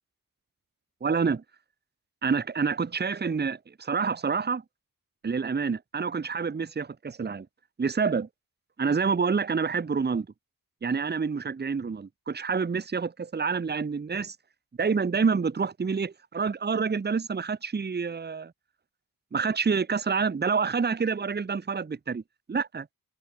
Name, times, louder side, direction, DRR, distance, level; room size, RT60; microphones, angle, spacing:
voice 1, 1.0-1.4 2.2-4.6 5.2-7.5 7.8-8.3 8.8-10.3 10.8-14.4 14.8-18.5 19.3-22.2 22.5-22.9, right 5 dB, 30° right, 0.8 m, -27 dB
open air
wide cardioid pair, 115°, 36 cm